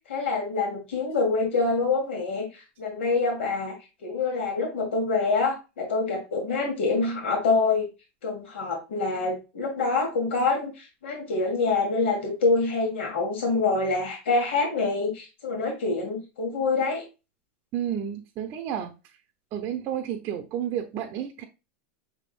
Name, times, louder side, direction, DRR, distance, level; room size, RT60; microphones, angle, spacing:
voice 1, 0.1-3.7 4.0-7.9 8.2-17.0, left 3 dB, 90° left, 1.9 m, -26 dB
voice 2, 17.7-19.2 19.5-21.4, right 9 dB, 35° right, 0.6 m, -31 dB
6.1 x 3.5 x 2.4 m
supercardioid pair, 150°, 6 cm